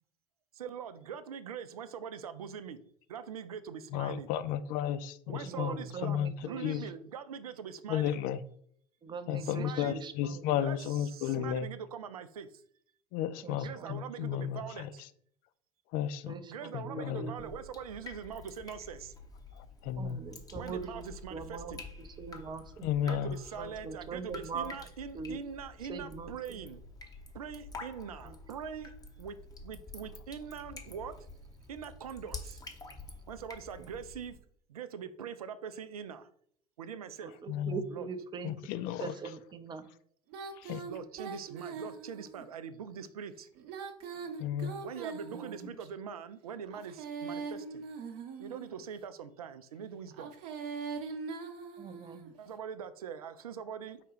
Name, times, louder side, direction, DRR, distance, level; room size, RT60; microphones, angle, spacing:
voice 1, 0.5-2.8 3.1-4.3 5.3-8.2 9.4-10.0 10.6-12.5 13.6-15.0 16.5-19.1 20.5-21.8 23.0-26.8 27.3-28.9 29.2-29.4 29.6-31.1 31.7-32.6 33.3-34.4 34.7-36.3 36.8-37.3 37.9-38.1 40.9-43.5 44.1-44.3 44.8-47.8 48.4-50.3 52.4-54.0, right 7 dB, 75° right, 10 dB, 0.4 m, -43 dB
voice 2, 3.9-6.3 6.6-6.8 7.9-8.4 9.3-11.7 13.1-14.9 15.9-16.3 16.7-17.3 19.6-20.2 22.8-23.4 37.5-37.8 38.4-39.1 40.6-40.8 44.4-44.7, left 10 dB, 50° left, 13 dB, 0.4 m, -33 dB
voice 3, 5.3-6.9 9.0-10.6 11.3-11.5 13.4-14.5 16.3-17.5 20.0-22.9 23.6-24.7 25.1-25.4 25.9-26.6 28.2-28.4 33.8-33.9 37.2-38.5 39.0-39.9 45.3-45.7 51.8-52.3, right 5 dB, 25° right, 9 dB, 0.5 m, -42 dB
Drip, 17.4-34.4, left 3 dB, 20° left, 0.8 m, -48 dB
Female singing, 40.3-42.5 43.6-45.9 46.7-48.8 50.1-52.3, right 5 dB, 60° right, 0.8 m, -42 dB
4.8 x 2.2 x 4.8 m, 0.63 s
figure-of-eight pair, 70°, 19 cm